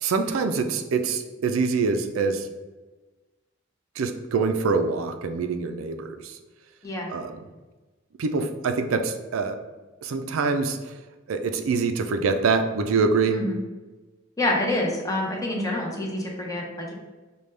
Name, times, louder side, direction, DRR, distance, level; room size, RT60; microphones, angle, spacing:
voice 1, 0.0-2.5 4.0-6.4 7.1-7.3 8.2-9.6 10.0-10.9 11.3-13.4, right 4 dB, 85° right, 7 dB, 0.4 m, -25 dB
voice 2, 14.4-16.9, left 1 dB, 15° left, -1 dB, 0.7 m, -27 dB
5.2 x 2.3 x 3.2 m, 1.2 s
head